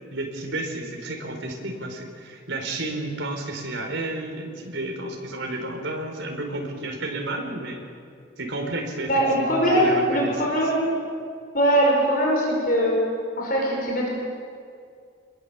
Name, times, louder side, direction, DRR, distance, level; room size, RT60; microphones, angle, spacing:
voice 1, 0.1-7.8 8.4-10.5, right 2 dB, 80° right, 2 dB, 4.6 m, -31 dB
voice 2, 9.1-10.8 11.5-13.0 13.4-14.1, equal, 45° left, -2 dB, 5.4 m, -21 dB
26.5 x 21.5 x 7.2 m, 2.3 s
head